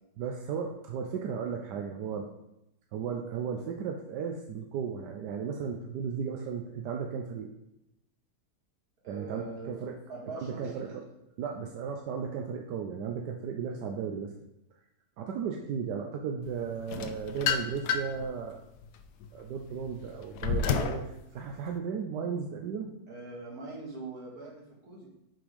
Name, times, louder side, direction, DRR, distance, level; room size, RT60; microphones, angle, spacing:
voice 1, 0.2-2.3 2.9-7.5 9.1-10.0 10.3-11.0 11.4-14.3 15.2-18.6 19.3-22.9, right 6 dB, 85° right, 3 dB, 1.3 m, -35 dB
voice 2, 9.0-9.7 10.1-10.9 23.1-25.1, right 3 dB, 60° right, -3 dB, 2.4 m, -42 dB
sound 1, 16.9-18.2 18.8-21.0, left 6 dB, 75° left, 1.1 m, -30 dB
6.1 x 4.9 x 5.1 m, 0.86 s
omnidirectional pair, 1.8 m